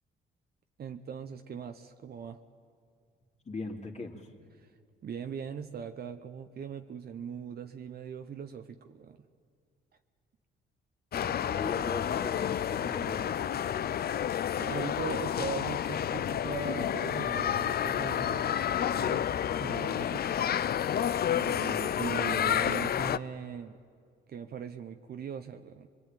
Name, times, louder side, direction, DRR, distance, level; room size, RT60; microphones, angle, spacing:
voice 1, 0.8-2.4 4.6-4.7 5.0-9.2 11.2-11.3 14.6-20.3 21.3-23.8 24.3-25.9, right 7 dB, 50° right, 7 dB, 0.9 m, -40 dB
voice 2, 3.4-4.3 11.1-13.6, left 3 dB, 35° left, 2 dB, 2.9 m, -40 dB
sound 1, 11.1-23.2, left 10 dB, 50° left, 0.6 m, -30 dB
22.5 x 22.5 x 9.1 m, 2.2 s
cardioid pair, 90°, 20 cm